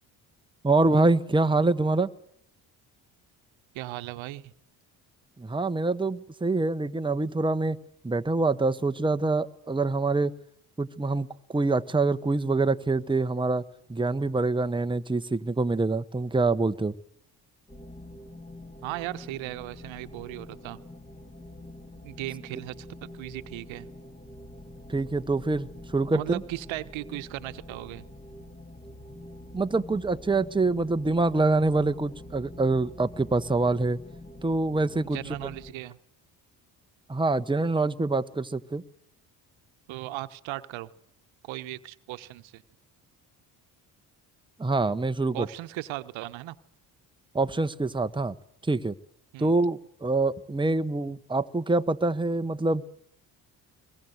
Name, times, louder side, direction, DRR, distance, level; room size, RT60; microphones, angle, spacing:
voice 1, 0.6-2.1 5.4-7.8 8.0-10.3 10.8-13.6 13.9-16.9 24.9-26.4 29.5-34.0 34.4-35.2 37.1-38.8 44.6-45.5 47.3-48.3 48.7-48.9 49.4-52.8, right 3 dB, 10° right, 10 dB, 1.1 m, -25 dB
voice 2, 3.7-4.5 18.8-20.8 22.0-23.9 26.1-28.1 35.1-36.0 39.9-40.9 41.4-42.6 45.3-46.6 49.3-49.5, right 17 dB, 75° right, 13 dB, 1.2 m, -37 dB
sound 1, 17.7-35.7, left 1 dB, 15° left, 2.4 m, -46 dB
22.5 x 21.0 x 8.0 m, 0.68 s
hypercardioid pair, 55°, 47 cm